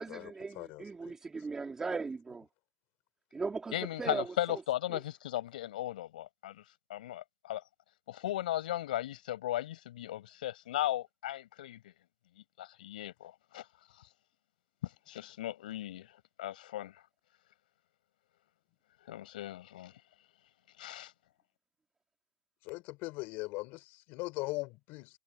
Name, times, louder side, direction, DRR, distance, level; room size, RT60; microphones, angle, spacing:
voice 1, 0.0-2.5 3.3-4.6 4.9-5.0, right 4 dB, 10° right, 2.5 m, -38 dB
voice 2, 3.7-6.6 6.9-7.6 8.1-11.9 12.6-13.7 15.1-16.1 16.4-16.9 19.1-19.9 20.8-21.1, left 13 dB, 75° left, 6.5 m, -37 dB
voice 3, 22.7-23.8 24.1-25.1, left 23 dB, 40° left, 3.9 m, -39 dB
supercardioid pair, 145°, 5 cm